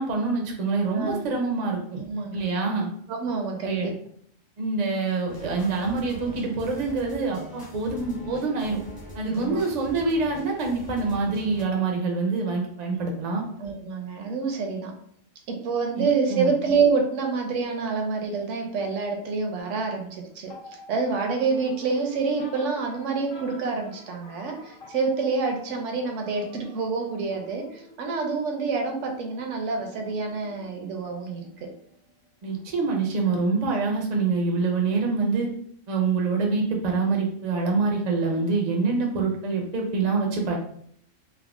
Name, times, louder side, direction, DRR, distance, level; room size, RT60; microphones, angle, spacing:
voice 1, 0.0-2.0 2.3-2.9 3.6-3.9 4.6-8.8 9.1-13.4 16.0-16.5 32.4-35.5 35.9-40.6, right 4 dB, 55° right, 1 dB, 0.5 m, -26 dB
voice 2, 0.9-1.3 2.0-2.4 3.1-3.9 9.3-9.6 13.6-14.9 15.5-31.7, right 4 dB, 70° right, 3 dB, 0.9 m, -27 dB
sound 1, 5.3-11.6, left 1 dB, 35° left, 0.4 m, -43 dB
sound 2, 19.6-33.8, left 2 dB, 80° left, 1.2 m, -49 dB
3.4 x 2.0 x 2.4 m, 0.65 s
omnidirectional pair, 1.3 m